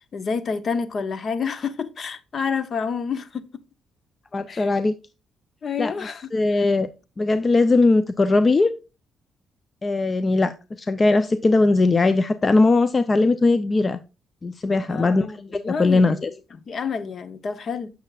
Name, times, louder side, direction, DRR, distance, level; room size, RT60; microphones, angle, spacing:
voice 1, 0.1-3.5 4.5-4.7 5.6-6.6 14.9-16.3 16.7-17.9, left 5 dB, 50° left, 0.9 m, -29 dB
voice 2, 4.3-4.9 5.8-5.9 6.3-6.9 7.2-8.7 9.8-14.0 14.4-15.3 15.5-16.3, left 3 dB, 30° left, 0.5 m, -19 dB
9.0 x 6.8 x 2.4 m
cardioid pair, 90°, 0 cm